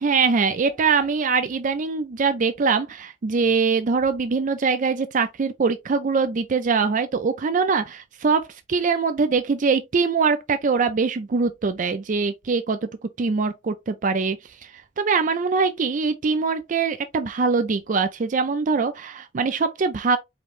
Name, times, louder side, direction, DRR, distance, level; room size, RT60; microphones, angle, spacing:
voice 1, 0.0-12.9 13.2-20.2, right 5 dB, 45° right, 0.4 m, -23 dB
5.0 x 3.1 x 2.5 m
head